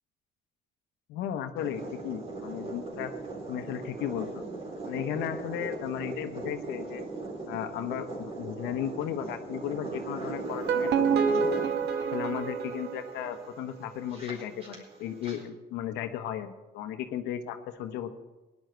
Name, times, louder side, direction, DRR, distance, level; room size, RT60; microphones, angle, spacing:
voice 1, 1.1-3.1 3.5-4.3 4.9-7.0 7.5-11.5 12.1-18.1, left 10 dB, 90° left, 8 dB, 1.1 m, -35 dB
sound 1, 1.6-15.4, right 3 dB, 35° right, 4.2 m, -39 dB
sound 2, 10.5-13.6, right 6 dB, 75° right, 1.3 m, -28 dB
18.5 x 11.0 x 4.6 m, 1.1 s
cardioid pair, 110°, 17 cm